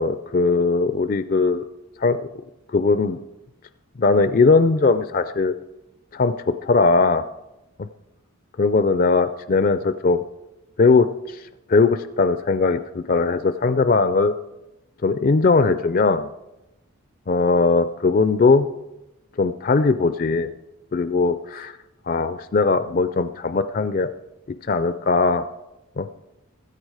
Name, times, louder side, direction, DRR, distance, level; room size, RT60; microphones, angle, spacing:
voice 1, 0.0-1.7 2.0-2.3 2.7-3.2 4.0-5.5 6.1-7.2 8.6-10.2 10.8-14.3 15.0-16.3 17.3-18.7 19.4-20.5 20.9-21.7 22.1-24.1 24.7-25.4 26.0-26.1, left 4 dB, 40° left, 11 dB, 0.4 m, -19 dB
15.5 x 13.5 x 4.8 m, 0.97 s
head